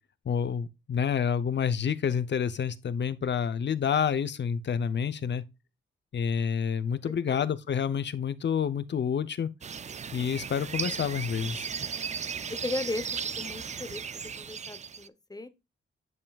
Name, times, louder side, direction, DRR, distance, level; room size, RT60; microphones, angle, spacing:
voice 1, 0.3-5.4 6.1-9.5 10.1-11.7, left 7 dB, 60° left, 0.7 m, -28 dB
sound 1, 9.6-15.1, right 6 dB, 35° right, 0.4 m, -36 dB
voice 2, 12.6-13.1 13.4-14.0 14.4-15.5, left 2 dB, 20° left, 0.9 m, -36 dB
9.6 x 5.4 x 2.4 m
cardioid pair, 85°, 21 cm